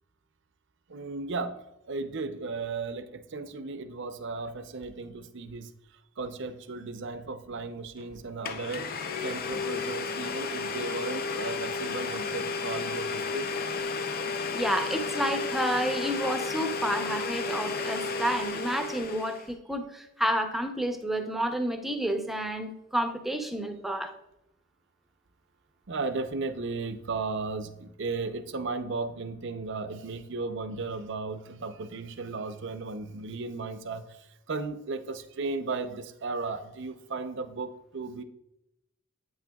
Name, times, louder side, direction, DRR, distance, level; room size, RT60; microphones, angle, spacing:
voice 1, 0.9-5.7 6.2-8.9 9.2-13.5 25.9-38.2, right 3 dB, 60° right, 10 dB, 0.6 m, -35 dB
Domestic sounds home sounds, 8.0-8.1 8.4-19.5, left 4 dB, 45° left, 0.5 m, -32 dB
voice 2, 14.5-24.1, right 1 dB, ahead, 5 dB, 0.6 m, -30 dB
8.8 x 8.5 x 2.3 m, 0.87 s
head